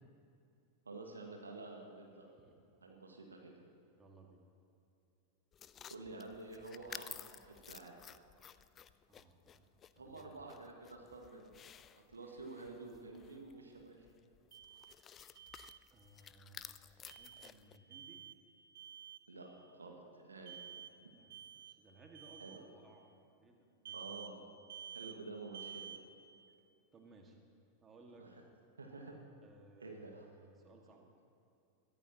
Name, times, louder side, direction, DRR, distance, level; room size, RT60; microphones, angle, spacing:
voice 1, 0.9-2.3 2.8-3.6 5.9-8.0 10.0-11.5 12.1-14.1 19.3-19.5 19.7-20.5 21.0-21.1 22.4-22.6 23.9-24.5 24.9-25.8 28.2-28.3 28.8-29.2 29.8-30.3, right 3 dB, 75° right, 1 dB, 1.7 m, -50 dB
voice 2, 4.0-4.4 9.1-9.7 10.0-10.5 15.9-18.2 21.0-23.1 23.4-24.2 26.9-27.4 27.8-28.3 29.4-31.1, right 3 dB, 20° right, 2 dB, 1.9 m, -61 dB
sound 1, 5.5-17.8, left 9 dB, 25° left, 0.4 m, -55 dB
Alarm, 14.5-15.0 15.4-15.8 17.1-17.5 17.9-18.4 18.7-19.2 20.5-21.0 21.3-21.8 22.1-22.6 23.9-24.3 24.7-25.2 25.5-26.0, right 9 dB, 60° right, 0.9 m, -50 dB
21.5 x 14.5 x 3.0 m, 2.6 s
figure-of-eight pair, 90°, 0 cm